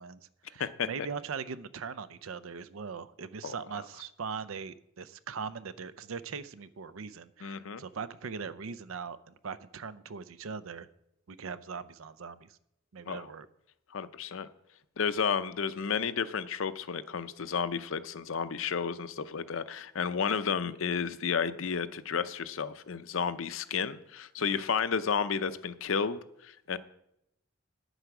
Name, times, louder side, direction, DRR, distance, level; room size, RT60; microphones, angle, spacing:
voice 1, 0.0-10.9 11.3-12.6 12.9-13.5 24.4-24.7, right 5 dB, 80° right, 15 dB, 0.5 m, -40 dB
voice 2, 7.4-7.8 13.1-13.3 13.9-14.5 15.0-26.8, left 6 dB, 70° left, 13 dB, 0.6 m, -32 dB
9.0 x 8.0 x 5.9 m, 0.80 s
head